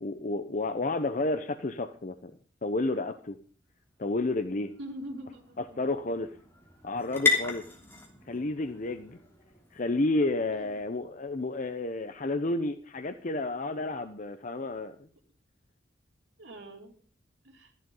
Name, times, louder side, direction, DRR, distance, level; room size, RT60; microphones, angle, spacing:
voice 1, 0.0-2.3 2.6-3.4 4.0-4.7 5.6-6.3 6.8-7.6 8.3-9.2 9.7-15.0, left 2 dB, 40° left, 10 dB, 0.8 m, -31 dB
sound 1, 3.6-11.5, left 4 dB, 10° left, 3.0 m, -36 dB
voice 2, 4.8-5.8 10.5-10.8 16.4-16.9 17.4-17.7, equal, 65° right, 0 dB, 2.8 m, -43 dB
14.0 x 11.0 x 5.5 m, 0.43 s
head